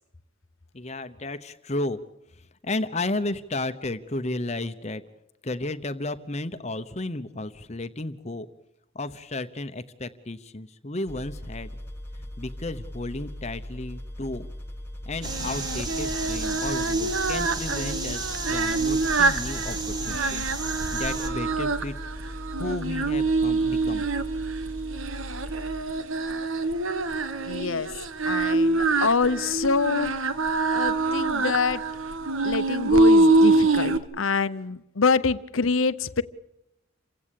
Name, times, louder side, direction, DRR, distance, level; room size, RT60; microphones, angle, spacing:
voice 1, 0.7-2.0 2.3-5.0 5.4-8.5 8.9-11.7 12.4-14.5 15.1-20.5 20.9-22.0 22.6-24.1, left 2 dB, 35° left, 11 dB, 0.9 m, -33 dB
sound 1, 11.1-25.8, left 1 dB, 10° left, 1.7 m, -39 dB
sound 2, 15.2-21.3, right 2 dB, 20° right, 2.3 m, -34 dB
Singing, 15.2-34.0, right 2 dB, 85° right, 1.6 m, -25 dB
voice 2, 27.4-27.9 28.3-30.1 30.7-31.8 32.4-36.2, left 4 dB, 85° left, 14 dB, 0.9 m, -26 dB
28.5 x 16.5 x 8.5 m, 0.88 s
head